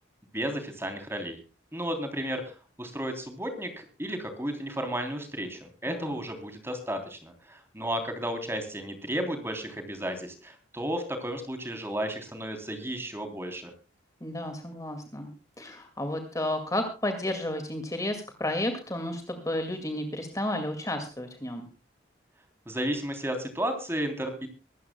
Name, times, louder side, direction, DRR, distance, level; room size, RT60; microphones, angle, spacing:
voice 1, 0.3-1.4 1.7-13.7 22.7-24.5, equal, 10° right, 6 dB, 3.3 m, -33 dB
voice 2, 5.9-6.2 14.2-15.3 15.6-21.7, left 1 dB, 15° left, 6 dB, 2.1 m, -32 dB
24.5 x 14.0 x 2.2 m, 0.33 s
head